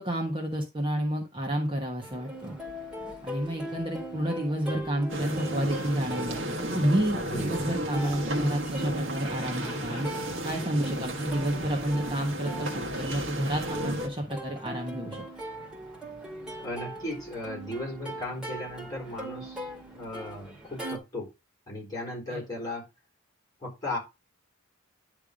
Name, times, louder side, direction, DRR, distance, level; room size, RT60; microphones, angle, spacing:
voice 1, 0.0-2.6 3.2-6.4 6.7-10.1 10.4-15.2 22.3-22.4, right 1 dB, 25° right, 0 dB, 1.3 m, -30 dB
Plucked string instrument, 2.0-21.0, right 1 dB, 5° right, 2.3 m, -40 dB
sound 1, 5.1-14.1, right 1 dB, 60° right, 1.3 m, -33 dB
voice 2, 16.6-21.3 21.7-22.8 23.6-24.0, left 1 dB, 15° left, -1 dB, 4.2 m, -36 dB
10.5 x 3.5 x 5.0 m, 0.25 s
head